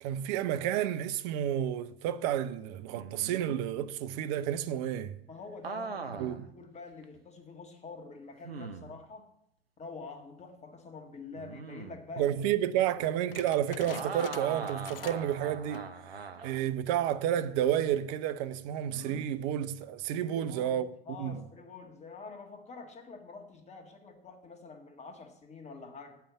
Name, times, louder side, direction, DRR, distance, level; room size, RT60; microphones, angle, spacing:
voice 1, 0.0-5.1 6.2-6.4 12.2-20.9 21.2-21.4, right 10 dB, 45° right, 0.6 m, -31 dB
sound 1, 2.9-3.6 5.6-6.4 7.0-7.1 8.4-9.0 11.4-12.0 13.8-16.7 18.9-19.2, right 5 dB, 80° right, 0.7 m, -41 dB
voice 2, 5.3-9.3 9.8-12.3 20.2-26.2, left 4 dB, 20° left, 1.7 m, -46 dB
sound 2, 13.3-15.4 15.6-16.0 16.5-16.6 17.3-17.6, left 9 dB, 70° left, 0.6 m, -47 dB
8.5 x 5.8 x 7.7 m
figure-of-eight pair, 80°, 30 cm